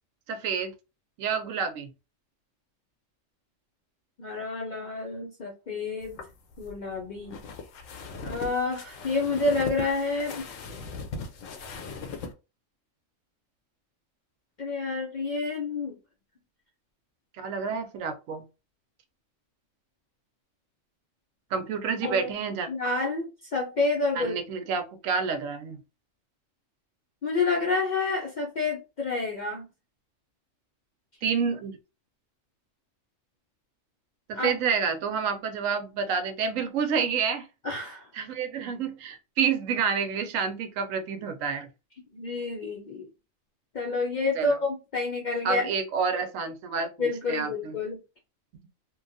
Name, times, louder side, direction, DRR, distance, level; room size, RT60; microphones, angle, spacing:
voice 1, 0.3-0.7 1.2-1.9 17.4-18.4 21.5-22.7 24.2-25.8 31.2-31.8 34.3-37.5 38.1-41.7 44.4-44.5 45.4-47.7, right 6 dB, 85° right, 7 dB, 1.0 m, -29 dB
voice 2, 4.2-6.1 6.6-7.4 8.2-10.4 14.6-16.0 22.0-22.3 22.7-24.4 27.2-29.7 34.3-34.5 37.6-38.1 42.1-43.0 43.7-45.7 47.0-48.0, left 3 dB, 60° left, -1 dB, 0.5 m, -29 dB
sound 1, 6.0-12.3, left 4 dB, 80° left, 1.0 m, -39 dB
3.0 x 2.3 x 2.5 m, 0.29 s
omnidirectional pair, 1.4 m